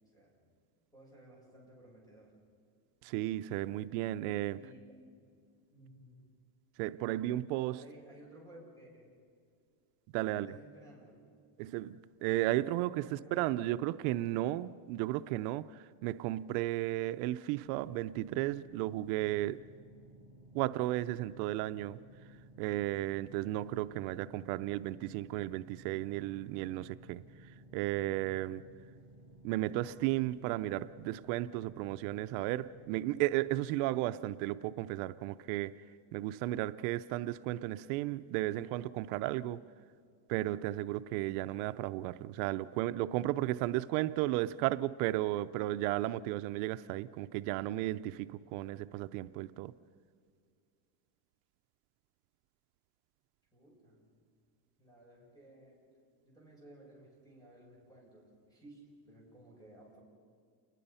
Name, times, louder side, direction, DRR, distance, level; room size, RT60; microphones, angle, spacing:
voice 1, 0.1-0.4 0.9-2.4 4.5-4.8 5.2-5.4 5.7-6.2 7.8-9.1 10.3-11.2 13.0-13.8 53.5-54.1 54.8-55.8 56.2-60.0, right 1 dB, 10° left, 7.0 m, -57 dB
voice 2, 3.0-4.6 6.8-7.8 10.1-10.6 11.6-19.6 20.5-22.0 22.6-27.2 27.7-28.6 29.4-35.7 36.1-39.6 40.3-49.7, right 15 dB, 75° right, 0.7 m, -34 dB
sound 1, 17.6-33.6, right 1 dB, 70° left, 3.1 m, -57 dB
29.0 x 21.0 x 5.6 m
cardioid pair, 160°, 46 cm